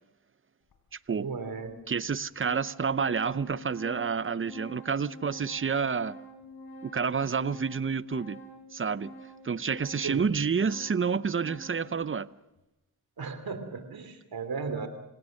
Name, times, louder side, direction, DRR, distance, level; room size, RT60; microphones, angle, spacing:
Organ, 0.7-0.8 1.7-1.8 2.1-12.0, equal, 85° left, 4.2 m, -47 dB
voice 1, 1.1-1.7 10.0-10.3 13.2-14.9, right 5 dB, 70° right, 3.1 m, -35 dB
voice 2, 1.9-6.2 6.8-8.4 8.7-9.1 9.4-12.3, right 6 dB, 35° right, 0.7 m, -29 dB
27.0 x 17.0 x 6.5 m
cardioid pair, 65°, 37 cm